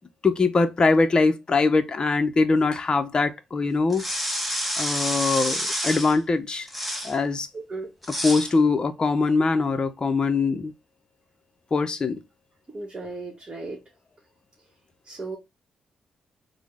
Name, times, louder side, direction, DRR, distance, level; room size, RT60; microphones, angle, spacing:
voice 1, 0.2-4.0 4.8-6.7 7.0-7.5 8.1-10.7 11.7-12.2, left 3 dB, 35° left, 0.5 m, -22 dB
sound 1, 3.9-6.2 6.7-7.2 8.0-8.5, equal, ahead, 0.7 m, -28 dB
voice 2, 7.5-7.9 12.7-13.8 15.1-15.4, right 3 dB, 30° right, 0.9 m, -35 dB
3.3 x 2.0 x 3.4 m
cardioid pair, 65°, 2 cm